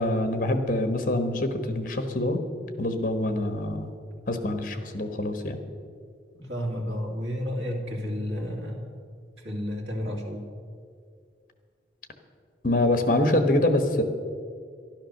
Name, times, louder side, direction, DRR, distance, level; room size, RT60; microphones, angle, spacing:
voice 1, 0.0-2.4 2.8-3.9 4.3-5.6 12.6-14.0, left 1 dB, 50° left, 7 dB, 1.3 m, -25 dB
voice 2, 6.3-9.0 9.4-10.4, equal, 80° right, 0 dB, 2.6 m, -31 dB
12.5 x 11.5 x 6.5 m, 2.2 s
head